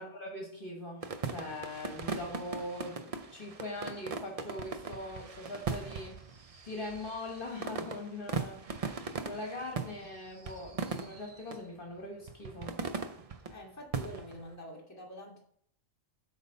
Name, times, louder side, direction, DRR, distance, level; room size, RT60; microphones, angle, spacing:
voice 1, 0.0-8.6 9.2-12.8, left 2 dB, 45° left, 1.5 m, -41 dB
sound 1, 1.0-11.6 12.3-13.5 13.9-14.5, right 5 dB, 55° right, 0.4 m, -39 dB
voice 2, 13.5-15.4, left 1 dB, 15° left, 1.5 m, -46 dB
8.1 x 3.5 x 5.3 m
omnidirectional pair, 1.3 m